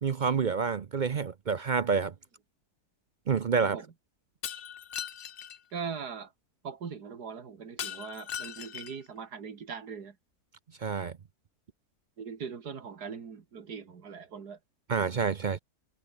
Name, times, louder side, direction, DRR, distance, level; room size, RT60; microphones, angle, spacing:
voice 1, 0.0-2.1 3.3-3.8 10.8-11.2 14.9-15.6, right 5 dB, 55° right, 0.5 m, -28 dB
Shatter, 4.4-5.6 7.8-9.1, left 9 dB, 55° left, 0.7 m, -39 dB
voice 2, 5.7-6.3 6.6-10.2 12.2-14.6, right 6 dB, 85° right, 2.6 m, -40 dB
omnidirectional pair, 1.7 m